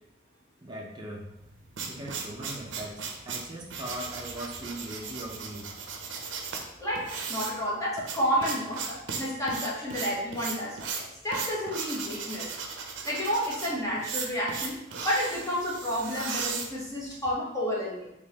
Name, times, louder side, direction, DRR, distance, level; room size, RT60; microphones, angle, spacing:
voice 1, 0.6-1.3 1.9-5.9, right 1 dB, 25° right, -2 dB, 0.6 m, -40 dB
sound 1, 1.4-17.3, right 5 dB, 80° right, 0.5 m, -37 dB
voice 2, 7.3-12.5 13.0-14.8 15.0-18.1, equal, 15° left, -6 dB, 1.0 m, -30 dB
3.7 x 2.9 x 2.8 m, 0.89 s
head